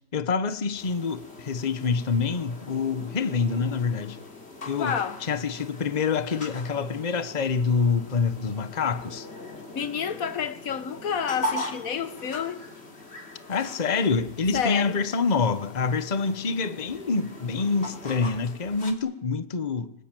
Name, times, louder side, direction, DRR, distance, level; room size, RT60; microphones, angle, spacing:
voice 1, 0.1-4.2 4.6-9.3 13.5-19.9, left 5 dB, 35° left, 1.1 m, -26 dB
sound 1, 0.7-18.9, left 1 dB, 50° left, 3.4 m, -40 dB
voice 2, 4.8-5.2 9.7-12.6 14.5-15.0, left 7 dB, 85° left, 1.6 m, -29 dB
25.0 x 19.0 x 9.2 m
omnidirectional pair, 1.4 m